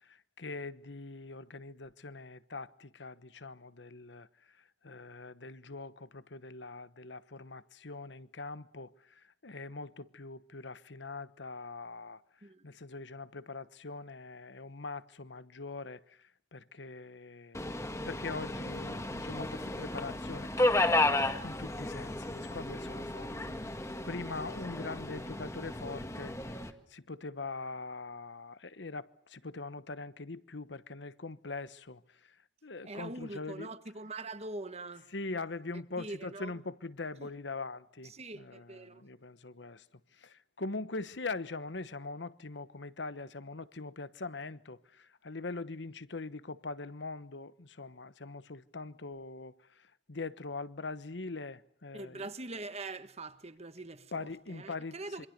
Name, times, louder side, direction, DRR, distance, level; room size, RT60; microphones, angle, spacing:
voice 1, 0.1-4.3 4.8-8.9 9.4-12.2 12.6-16.2 16.5-17.7 18.1-20.5 21.4-23.4 23.7-23.8 24.0-26.6 26.9-32.0 32.6-33.7 35.1-39.8 40.2-49.5 50.1-52.3 54.1-55.3, left 3 dB, 70° left, 1.1 m, -42 dB
Subway metro underground, 17.5-26.7, left 2 dB, 15° left, 1.8 m, -33 dB
voice 2, 32.8-35.1 36.0-36.6 37.2-37.3 38.0-39.0 51.9-55.3, right 2 dB, 35° right, 1.6 m, -43 dB
27.0 x 25.0 x 6.7 m
head